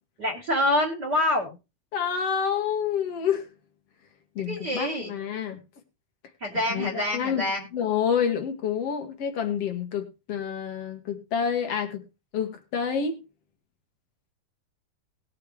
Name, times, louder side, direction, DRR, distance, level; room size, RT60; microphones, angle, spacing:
voice 1, 0.2-1.6 4.5-5.1 6.4-7.7, left 1 dB, 30° right, 0 dB, 2.9 m, -26 dB
voice 2, 1.9-3.5 4.4-5.6 6.7-12.0 12.3-13.2, left 7 dB, 50° left, 5 dB, 2.3 m, -28 dB
19.5 x 6.9 x 3.3 m, 0.28 s
omnidirectional pair, 4.4 m